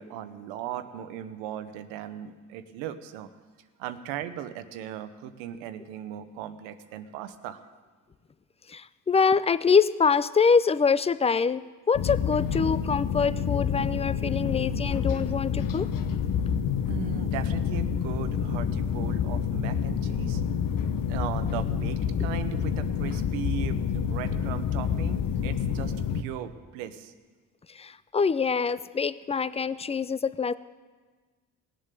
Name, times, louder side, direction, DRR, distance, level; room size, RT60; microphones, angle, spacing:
voice 1, 0.0-3.3 3.8-7.6 16.9-20.4 21.1-27.1, right 10 dB, 90° right, 11 dB, 0.9 m, -38 dB
voice 2, 8.7-15.9 27.8-30.5, left 5 dB, 15° left, 16 dB, 0.4 m, -25 dB
sound 1, 11.9-26.2, left 7 dB, 50° left, 1.0 m, -28 dB
19.0 x 7.6 x 6.7 m, 1.4 s
supercardioid pair, 70°, 44 cm